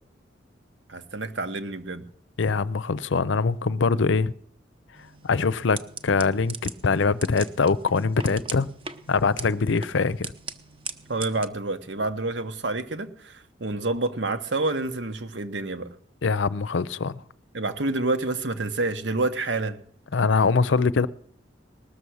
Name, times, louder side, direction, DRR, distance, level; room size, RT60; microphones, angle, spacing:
voice 1, 0.9-2.0 11.1-15.9 17.5-19.8, right 2 dB, 70° right, 1.2 m, -28 dB
voice 2, 2.4-4.3 5.2-8.7 9.1-10.3 16.2-17.2 20.1-21.1, left 4 dB, 75° left, 0.6 m, -23 dB
sound 1, 4.9-11.5, right 5 dB, 30° right, 0.8 m, -40 dB
19.5 x 7.0 x 6.3 m
head